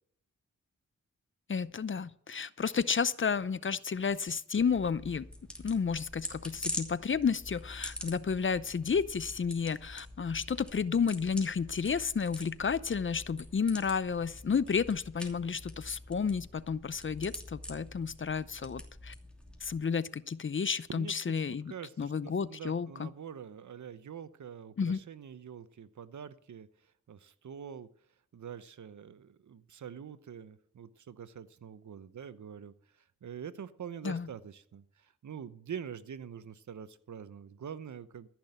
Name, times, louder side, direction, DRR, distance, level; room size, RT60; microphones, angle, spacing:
voice 1, 1.5-5.3 5.6-19.1 19.6-23.1 24.8-25.0 34.0-34.3, left 6 dB, 40° left, 0.6 m, -31 dB
sound 1, 4.6-19.8, left 1 dB, 5° left, 2.8 m, -45 dB
voice 2, 20.9-26.7 27.1-27.9 28.3-32.7 33.2-38.3, right 8 dB, 70° right, 0.8 m, -45 dB
14.0 x 6.1 x 8.1 m
cardioid pair, 50°, 30 cm